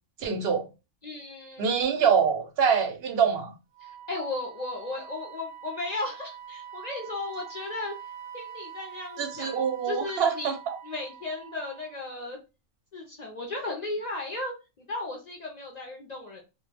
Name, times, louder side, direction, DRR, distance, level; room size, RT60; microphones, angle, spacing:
voice 1, 0.2-0.7 1.6-3.5 9.2-10.8, right 7 dB, 60° right, 0.7 m, -25 dB
voice 2, 1.0-1.8 3.8-7.9 8.3-10.5 10.8-12.4 12.9-16.4, left 2 dB, 55° left, 0.4 m, -35 dB
Wind instrument woodwind instrument, 3.7-12.0, right 8 dB, 85° right, 1.0 m, -45 dB
2.2 x 2.1 x 3.2 m
omnidirectional pair, 1.3 m